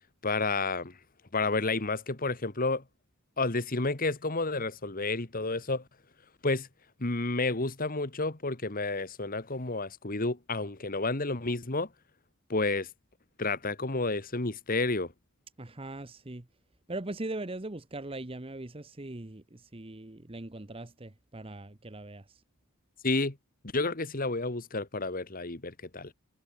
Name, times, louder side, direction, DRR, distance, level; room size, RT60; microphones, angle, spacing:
voice 1, 0.2-0.9 1.3-2.8 3.4-5.8 6.4-6.7 7.0-11.9 12.5-12.9 13.4-15.1 23.0-23.4 23.7-26.1, left 3 dB, 40° left, 1.8 m, -30 dB
voice 2, 15.6-16.4 16.9-22.4, right 2 dB, 25° right, 1.0 m, -40 dB
head